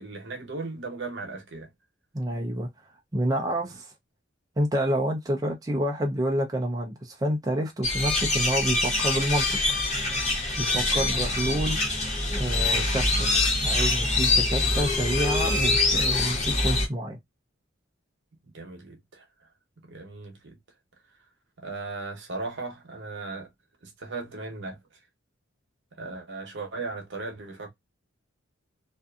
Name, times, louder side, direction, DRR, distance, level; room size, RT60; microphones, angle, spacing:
voice 1, 0.0-1.7 10.6-11.2 14.2-14.4 18.4-19.5 19.8-20.6 21.6-23.5 23.8-24.8 26.0-27.7, right 3 dB, 65° right, 0.9 m, -37 dB
voice 2, 2.1-2.7 3.1-3.9 4.6-9.8 10.5-11.8 12.3-13.3 13.6-17.2, equal, 20° right, 0.4 m, -28 dB
sound 1, 7.8-16.9, left 2 dB, 35° left, 1.1 m, -24 dB
2.6 x 2.4 x 2.3 m
head